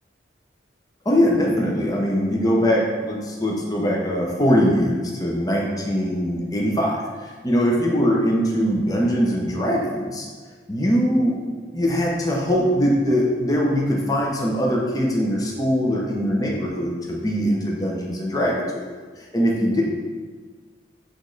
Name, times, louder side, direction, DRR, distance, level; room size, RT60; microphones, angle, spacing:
voice 1, 1.0-10.3 10.7-18.8 19.2-19.8, equal, 20° left, -2 dB, 0.9 m, -22 dB
8.6 x 3.2 x 3.9 m, 1.5 s
head